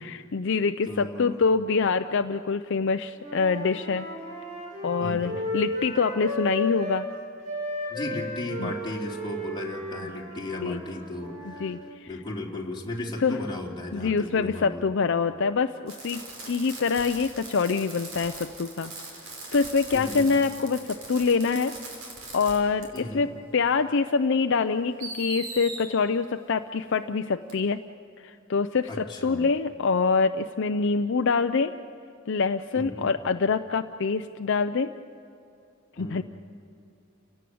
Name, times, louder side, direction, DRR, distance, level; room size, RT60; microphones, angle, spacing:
voice 1, 0.3-4.1 4.8-7.1 8.6-8.7 10.6-10.8 11.5-12.1 13.2-13.4 13.9-18.9 19.5-21.7 22.3-27.8 28.2-31.7 32.3-34.9 36.0-36.2, left 4 dB, 60° left, 8 dB, 0.5 m, -25 dB
voice 2, 0.8-1.4 5.0-5.4 7.9-11.7 12.1-14.8 19.9-20.3 22.9-23.3 28.9-29.4 32.7-33.1 36.0-36.2, left 1 dB, 20° left, -3 dB, 3.3 m, -35 dB
Wind instrument woodwind instrument, 3.2-7.1 7.4-11.8, left 2 dB, 40° right, 6.3 m, -34 dB
Fireworks, 15.9-22.6 22.8-23.0 24.1-24.2 25.0-25.9 27.5-27.6, right 3 dB, 75° right, 5.5 m, -40 dB
30.0 x 18.0 x 7.8 m, 2.7 s
head